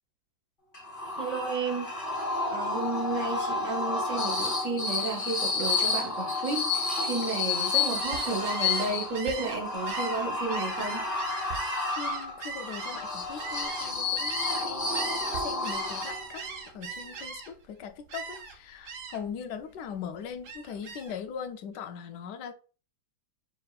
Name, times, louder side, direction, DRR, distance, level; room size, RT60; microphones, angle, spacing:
sound 1, 0.7-16.5, left 3 dB, 35° left, 1.2 m, -31 dB
voice 1, 1.2-1.9 2.5-11.0, right 3 dB, 55° right, 1.3 m, -32 dB
Gull seagull, 7.9-14.7 14.9-17.7 18.1-18.6 18.9-19.3 19.7-21.2, right 5 dB, 85° right, 1.4 m, -40 dB
voice 2, 11.5-16.5 16.7-22.5, left 7 dB, 90° left, 1.3 m, -40 dB
5.1 x 4.1 x 2.3 m
omnidirectional pair, 1.8 m